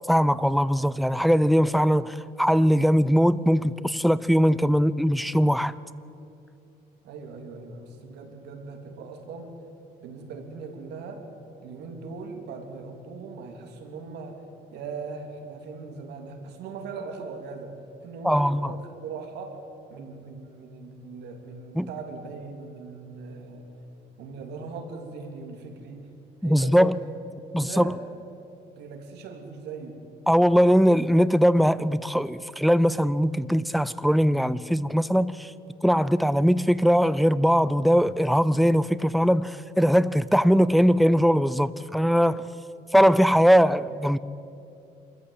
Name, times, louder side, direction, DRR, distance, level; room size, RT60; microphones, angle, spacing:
voice 1, 0.1-5.7 18.2-18.7 21.8-21.9 26.4-26.9 27.5-27.9 30.3-35.5 35.8-42.5 42.9-44.2, equal, ahead, 0.6 m, -21 dB
voice 2, 7.0-9.6 10.0-11.3 11.6-19.6 19.9-23.7 24.2-26.1 26.4-27.1 27.6-27.9 28.7-30.0, right 4 dB, 80° right, 3.4 m, -40 dB
26.0 x 14.5 x 9.6 m
cardioid pair, 110°, 17 cm